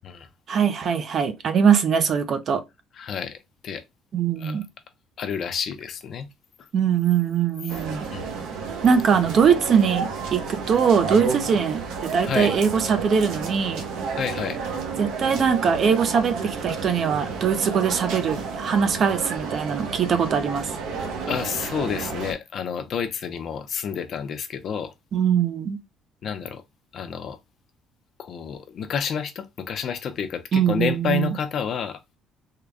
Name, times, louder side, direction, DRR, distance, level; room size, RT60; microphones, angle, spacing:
voice 1, 0.5-2.6 4.1-4.7 6.7-8.1 8.8-13.8 15.0-20.7 25.1-25.8 30.5-31.4, right 7 dB, 40° right, 0.5 m, -22 dB
voice 2, 3.0-3.4 3.6-3.8 4.4-4.6 5.2-6.3 7.6-7.7 8.1-8.3 12.2-12.5 14.1-14.6 21.3-24.9 26.2-26.6 26.9-27.4 28.2-32.2, left 7 dB, 45° left, 0.6 m, -29 dB
sound 1, 7.7-22.3, right 5 dB, 75° right, 0.9 m, -31 dB
3.7 x 2.2 x 3.4 m
cardioid pair, 145°, 0 cm